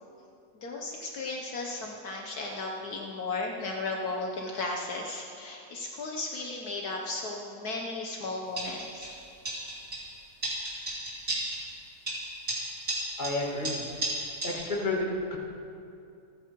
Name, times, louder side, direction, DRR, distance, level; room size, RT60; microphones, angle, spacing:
voice 1, 0.6-9.1, left 3 dB, 65° left, 0 dB, 1.7 m, -35 dB
sound 1, 8.6-9.2 9.4-10.1 10.4-11.7 12.1-14.5, right 1 dB, 50° right, 3.8 m, -34 dB
voice 2, 13.2-13.8 14.4-15.4, left 2 dB, 30° left, -2 dB, 2.4 m, -30 dB
27.0 x 9.6 x 4.7 m, 2.6 s
omnidirectional pair, 1.8 m